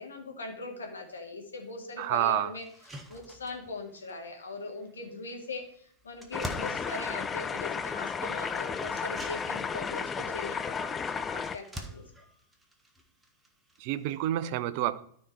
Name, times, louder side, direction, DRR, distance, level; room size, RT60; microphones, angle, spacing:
voice 1, 0.0-2.7 3.1-12.0, left 3 dB, 70° left, 2 dB, 2.1 m, -40 dB
sound 1, 1.6-1.7 2.1-2.2 2.6-14.3, right 1 dB, 10° right, 1.3 m, -48 dB
voice 2, 2.0-2.5 13.8-15.0, right 14 dB, 45° right, 14 dB, 0.6 m, -28 dB
sound 2, 6.3-11.6, left 6 dB, 20° left, 0.5 m, -33 dB
13.0 x 4.4 x 4.7 m, 0.63 s
figure-of-eight pair, 90°, 0 cm